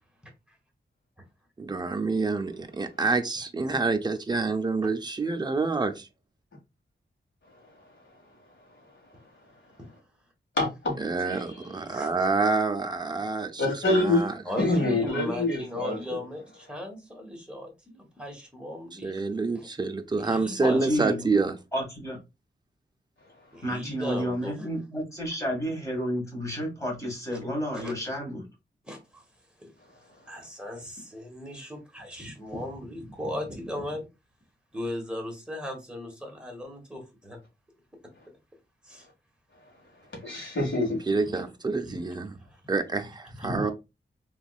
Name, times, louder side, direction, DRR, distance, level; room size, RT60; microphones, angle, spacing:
voice 1, 1.6-6.1 11.0-14.3 19.0-21.6 41.1-42.3 42.7-43.7, right 3 dB, 20° right, 0.5 m, -27 dB
voice 2, 10.6-11.0 11.3-11.4 13.6-16.2 40.2-41.0, left 2 dB, 90° left, 1.7 m, -26 dB
voice 3, 14.4-19.2 19.5-19.7 20.2-20.9 23.5-24.5 27.7-27.9 28.8-29.2 29.6-29.7 30.3-34.1 34.7-37.4 38.9-39.1 41.9-42.0 42.4-42.6 43.4-43.7, left 1 dB, 5° right, 1.3 m, -37 dB
voice 4, 20.6-21.3 21.7-22.2 23.6-28.5, equal, 15° left, 1.8 m, -31 dB
3.4 x 3.0 x 2.3 m
wide cardioid pair, 105°, 19 cm